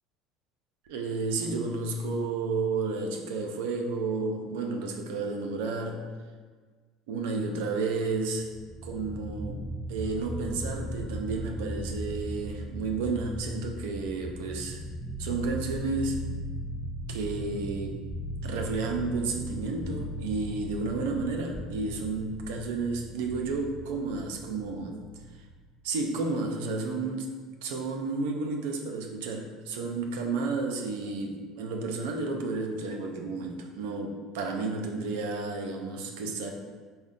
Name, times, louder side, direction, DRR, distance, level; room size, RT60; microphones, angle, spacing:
voice 1, 0.9-6.0 7.1-8.5 8.8-9.6 9.9-14.8 15.2-16.2 17.1-18.0 18.4-25.0 25.8-27.3 27.6-36.5, right 3 dB, 80° right, 3 dB, 0.5 m, -31 dB
sound 1, 8.5-25.8, right 1 dB, 10° right, 0.3 m, -38 dB
4.1 x 2.1 x 3.7 m, 1.5 s
hypercardioid pair, 75°, 0 cm